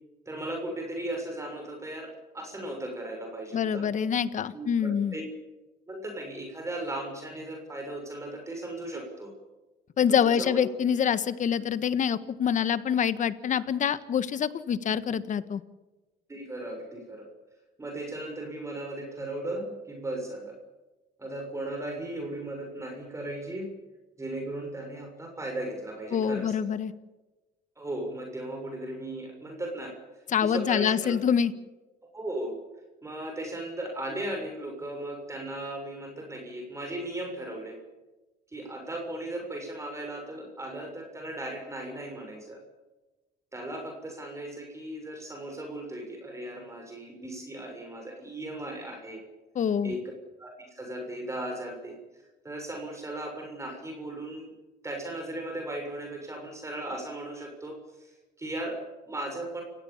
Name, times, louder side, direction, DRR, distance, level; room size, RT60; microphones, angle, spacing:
voice 1, 0.2-3.9 4.5-5.2 5.9-9.3 10.1-10.6 16.3-17.3 17.8-20.6 21.2-23.7 24.2-26.5 27.8-29.9 30.4-31.2 32.1-32.6 33.0-37.8 38.5-42.6 43.5-49.2 49.8-50.0 50.4-52.0 52.4-54.5 54.8-58.1 58.4-59.6, right 1 dB, 15° right, 2 dB, 6.7 m, -37 dB
voice 2, 3.5-5.1 10.0-15.6 26.1-26.9 30.3-31.5 49.5-49.9, left 8 dB, 50° left, 13 dB, 1.5 m, -26 dB
29.5 x 18.0 x 7.3 m, 1.1 s
cardioid pair, 110°, 17 cm